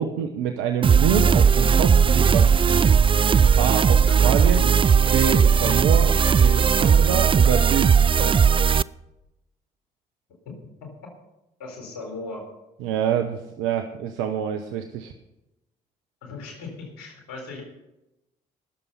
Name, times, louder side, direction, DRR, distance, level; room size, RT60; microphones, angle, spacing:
voice 1, 0.0-2.9 3.6-4.7 5.1-8.5 12.8-15.1, right 8 dB, 75° right, 6 dB, 0.9 m, -26 dB
sound 1, 0.8-8.8, right 6 dB, 25° right, 0.4 m, -17 dB
voice 2, 11.6-12.4 16.2-17.6, left 3 dB, 75° left, 2 dB, 4.1 m, -37 dB
19.0 x 7.0 x 5.5 m, 0.94 s
hypercardioid pair, 50°, 20 cm